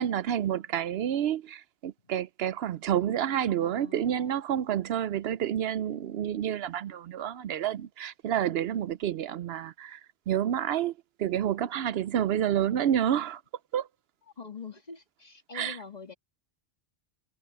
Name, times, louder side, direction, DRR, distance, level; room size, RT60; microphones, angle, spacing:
voice 1, 0.0-10.0 10.3-10.9 11.2-13.4 13.7-13.9 15.5-15.8, right 10 dB, 70° right, 0.8 m, -29 dB
voice 2, 3.6-4.4 14.4-16.1, left 5 dB, 40° left, 1.8 m, -45 dB
omnidirectional pair, 1.1 m